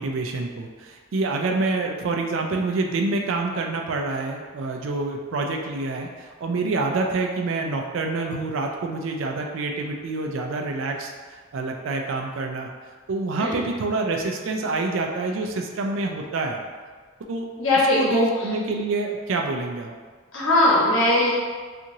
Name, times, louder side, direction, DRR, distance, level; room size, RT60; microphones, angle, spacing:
voice 1, 0.0-12.7 13.1-16.6 17.3-17.5 18.0-19.9, right 3 dB, 85° right, 2 dB, 0.4 m, -27 dB
voice 2, 17.6-18.3 20.3-21.3, left 1 dB, 85° left, -6 dB, 0.9 m, -19 dB
2.9 x 2.5 x 2.6 m, 1.5 s
head